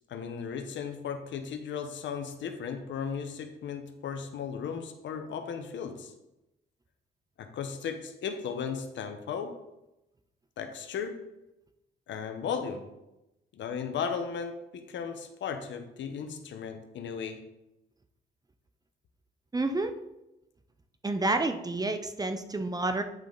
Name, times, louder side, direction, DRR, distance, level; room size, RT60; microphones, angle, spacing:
voice 1, 0.1-6.1 7.4-9.6 10.6-11.2 12.1-12.9 13.5-17.4, left 6 dB, 70° left, 7 dB, 1.0 m, -36 dB
voice 2, 19.5-19.9 21.0-23.0, right 2 dB, 20° right, 8 dB, 0.6 m, -29 dB
9.0 x 5.2 x 3.9 m, 0.93 s
cardioid pair, 90°, 20 cm